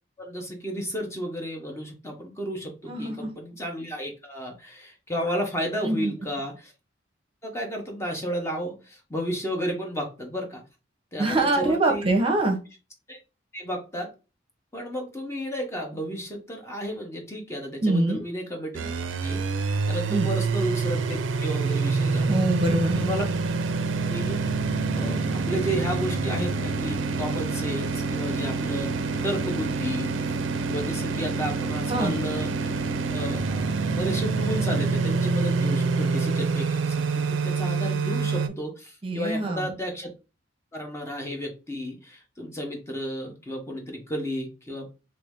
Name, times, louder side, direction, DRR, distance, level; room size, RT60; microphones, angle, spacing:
voice 1, 0.2-6.7 7.4-10.6 11.1-12.1 13.1-13.2 13.5-14.1 14.7-18.9 19.2-22.4 22.9-23.2 24.1-24.6 24.9-30.1 30.7-32.8 33.1-40.1 40.7-44.9, equal, 15° left, 1 dB, 0.8 m, -33 dB
voice 2, 2.9-3.3 5.8-6.1 11.2-12.6 17.8-18.2 20.1-20.3 22.3-23.1 31.9-32.1 39.0-39.7, right 2 dB, 30° right, 3 dB, 0.7 m, -24 dB
sound 1, 18.7-38.5, right 4 dB, 85° right, 0.5 m, -26 dB
3.1 x 2.6 x 3.4 m, 0.31 s
head